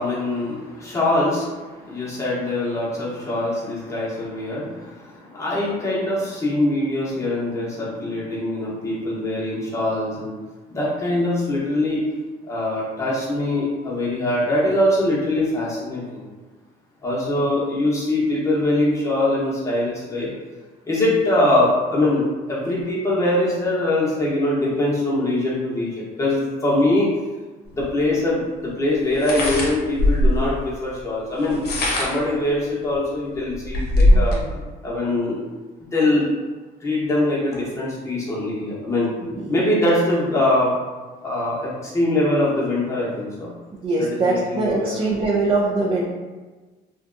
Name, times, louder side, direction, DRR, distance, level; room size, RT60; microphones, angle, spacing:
voice 1, 0.0-10.3 10.7-12.0 12.5-16.2 17.0-20.3 20.9-27.1 27.7-34.3 34.8-35.4 35.9-36.3 36.8-39.1 39.5-40.8 41.2-43.5 44.0-45.2, left 1 dB, 15° left, -7 dB, 0.9 m, -23 dB
sound 1, 27.8-27.9 29.1-30.5 31.4-32.3 32.9-33.0 33.3-34.4, left 1 dB, 70° left, 0.7 m, -19 dB
voice 2, 34.1-34.5 39.2-39.4 43.8-46.0, right 3 dB, 30° right, -5 dB, 0.4 m, -22 dB
2.6 x 2.2 x 2.5 m, 1.3 s
cardioid pair, 110°, 17 cm